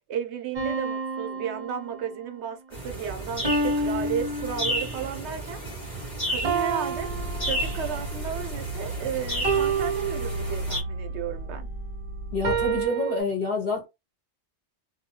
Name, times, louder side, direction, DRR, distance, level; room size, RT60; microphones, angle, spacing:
voice 1, 0.1-5.6 6.3-7.1 7.4-11.7, right 8 dB, 75° right, 0.9 m, -33 dB
sound 1, 0.5-2.3 3.4-5.1 6.4-8.1 9.4-10.9 12.4-13.2, right 4 dB, 35° right, 0.8 m, -29 dB
sound 2, 2.7-10.8, right 1 dB, 40° left, 1.4 m, -33 dB
sound 3, 7.0-12.9, right 1 dB, 15° left, 1.2 m, -35 dB
voice 2, 12.3-13.8, left 3 dB, 55° left, 1.6 m, -27 dB
2.8 x 2.2 x 2.7 m
omnidirectional pair, 1.2 m